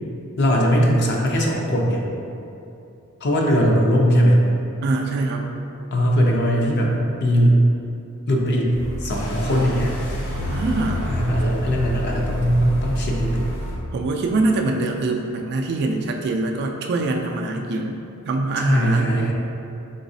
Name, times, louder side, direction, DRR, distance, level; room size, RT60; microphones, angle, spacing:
voice 1, 0.4-2.0 3.2-4.4 5.9-7.6 8.3-8.7 9.0-9.9 11.1-13.5 18.6-19.3, equal, 50° left, -1 dB, 0.6 m, -19 dB
voice 2, 4.8-5.5 10.5-11.1 13.9-18.0 18.3-19.1, right 2 dB, 50° right, 2 dB, 0.3 m, -23 dB
sound 1, 8.7-13.7, equal, 85° left, 1.3 m, -28 dB
4.0 x 3.8 x 2.7 m, 2.8 s
head